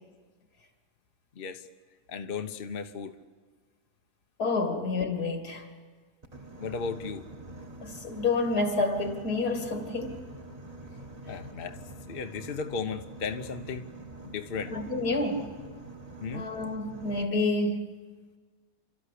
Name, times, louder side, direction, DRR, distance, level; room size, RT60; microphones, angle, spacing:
voice 1, 2.1-3.2 6.6-7.3 11.3-11.8 12.1-13.9 14.2-14.8 16.2-16.5, left 5 dB, 40° left, 1.0 m, -35 dB
voice 2, 4.4-5.7 7.8-10.2 14.7-15.5 16.3-17.8, left 3 dB, 75° left, 2.9 m, -29 dB
Boat Water vehicle, 6.2-17.2, right 2 dB, 25° right, 1.4 m, -45 dB
29.5 x 13.0 x 10.0 m
omnidirectional pair, 1.7 m